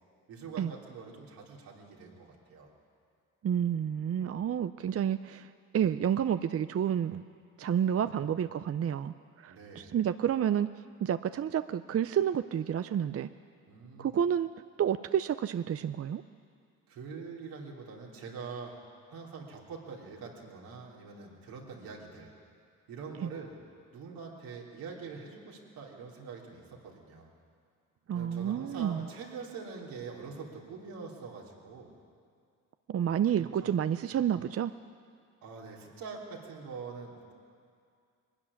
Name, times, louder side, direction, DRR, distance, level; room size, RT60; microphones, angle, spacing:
voice 1, 0.3-2.7 9.5-10.0 13.7-14.1 16.9-18.7 19.1-22.3 22.9-23.6 23.9-27.3 28.1-31.9 32.9-33.8 35.4-37.3, right 5 dB, 85° right, -2 dB, 3.5 m, -44 dB
voice 2, 3.4-7.2 7.6-10.7 11.0-13.3 14.0-14.5 14.8-16.2 23.2-23.3 28.1-29.1 32.9-34.7, right 9 dB, 45° right, 12 dB, 0.6 m, -30 dB
21.5 x 13.0 x 10.0 m, 2.3 s
supercardioid pair, 65°, 34 cm